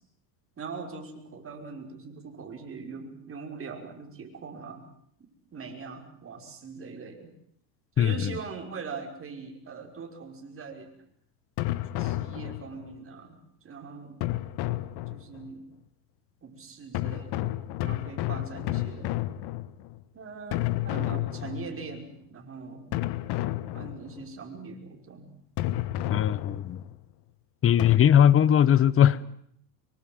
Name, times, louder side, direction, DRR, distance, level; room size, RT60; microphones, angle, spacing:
voice 1, 0.6-4.9 5.5-7.3 8.0-10.9 12.0-14.2 15.1-15.7 16.4-17.5 17.8-19.1 20.1-22.9 23.7-25.3 27.7-27.8, right 5 dB, 25° right, 5.6 m, -41 dB
voice 2, 8.0-8.3 26.1-26.8 27.6-29.2, left 9 dB, 25° left, 1.1 m, -20 dB
sound 1, 11.6-13.0 14.2-15.5 16.9-20.0 20.5-22.0 22.9-24.3 25.6-27.0 27.8-28.0, left 16 dB, 50° left, 1.6 m, -31 dB
24.5 x 23.5 x 8.0 m
supercardioid pair, 115°, 49 cm